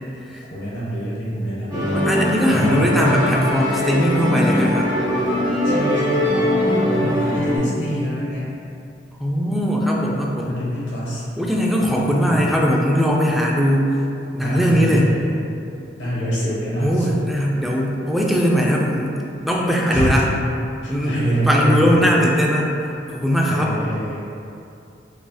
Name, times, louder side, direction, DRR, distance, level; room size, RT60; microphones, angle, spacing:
voice 1, 0.5-1.9 2.5-3.3 5.6-8.5 10.4-11.3 11.8-12.6 14.3-15.3 16.0-17.2 19.9-20.3 20.8-22.1 23.4-24.2, equal, 90° left, -7 dB, 0.9 m, -25 dB
Musical instrument, 1.7-7.6, left 1 dB, 25° right, 1.2 m, -21 dB
voice 2, 1.9-5.0 9.2-10.6 11.4-13.9 14.3-15.1 16.8-20.2 20.9-21.2 21.5-22.8 23.1-23.7, equal, ahead, -2 dB, 0.3 m, -19 dB
4.8 x 2.7 x 2.3 m, 2.6 s
head